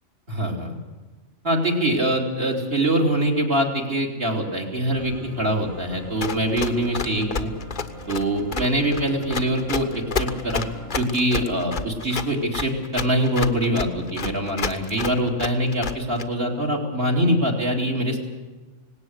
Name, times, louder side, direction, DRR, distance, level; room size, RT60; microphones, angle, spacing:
voice 1, 0.3-0.8 1.4-7.5 8.1-9.9 10.2-10.6 11.0-18.2, right 1 dB, 50° right, 2 dB, 3.6 m, -23 dB
sound 1, 4.9-11.0, equal, 65° right, 6.6 m, -40 dB
Run, 6.2-16.2, left 5 dB, 40° left, 1.1 m, -29 dB
18.5 x 18.0 x 8.1 m, 1.3 s
omnidirectional pair, 1.3 m